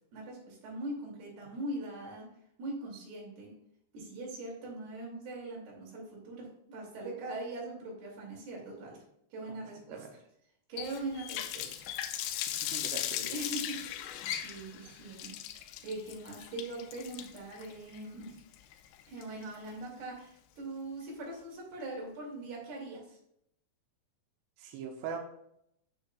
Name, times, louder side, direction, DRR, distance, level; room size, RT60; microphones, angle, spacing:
voice 1, 0.1-2.3 2.6-3.5 3.9-9.0 9.3-10.0 10.7-11.9 13.1-15.3 15.8-18.4 19.1-23.2, right 2 dB, 60° right, -3 dB, 4.3 m, -41 dB
Water tap faucet, 10.8-19.7, left 11 dB, 85° left, 3.0 m, -38 dB
voice 2, 12.5-13.2 24.6-25.2, right 6 dB, 80° right, 1 dB, 2.5 m, -41 dB
9.5 x 6.8 x 2.3 m, 0.74 s
omnidirectional pair, 5.5 m